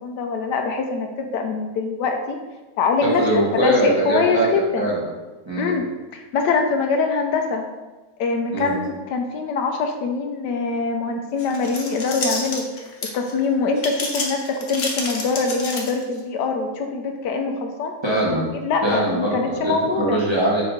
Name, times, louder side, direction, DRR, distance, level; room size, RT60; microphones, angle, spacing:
voice 1, 0.0-2.4 2.8-3.3 3.6-4.9 5.6-5.9 6.1-7.6 8.2-17.9 18.5-20.2, left 4 dB, 75° left, 4 dB, 1.2 m, -23 dB
voice 2, 3.0-4.5 4.7-5.0 5.4-5.7 8.5-8.7 18.0-18.5 18.8-20.6, right 1 dB, 20° right, -6 dB, 1.1 m, -22 dB
sound 1, 11.4-13.3 13.8-16.2, left 3 dB, 50° left, 1.1 m, -29 dB
6.2 x 3.0 x 5.0 m, 1.2 s
omnidirectional pair, 1.9 m